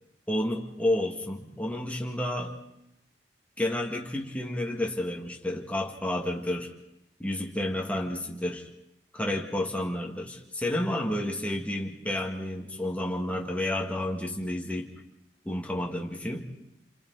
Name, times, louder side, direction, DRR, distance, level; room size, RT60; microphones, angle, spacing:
voice 1, 0.3-2.5 3.6-6.7 7.2-8.6 9.1-14.9 15.4-16.5, left 1 dB, 10° left, 0 dB, 2.3 m, -30 dB
29.5 x 26.5 x 4.2 m, 0.81 s
head